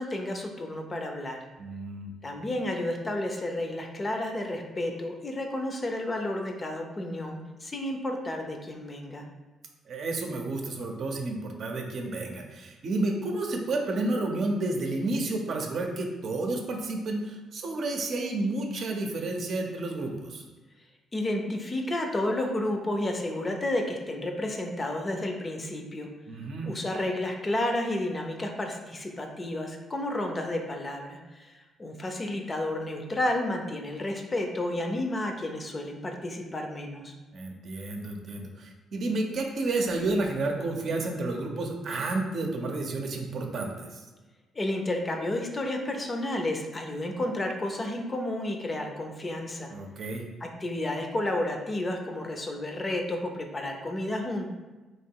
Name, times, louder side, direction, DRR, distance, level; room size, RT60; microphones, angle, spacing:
voice 1, 0.0-1.4 2.2-9.3 21.1-26.1 26.6-37.1 44.5-49.7 50.4-54.5, left 1 dB, 30° left, 3 dB, 0.6 m, -31 dB
voice 2, 1.6-2.1 9.9-20.4 26.3-26.7 37.3-44.0 49.7-50.3, right 2 dB, 60° right, 2 dB, 0.7 m, -31 dB
3.1 x 2.9 x 4.5 m, 1.2 s
cardioid pair, 90°, 0 cm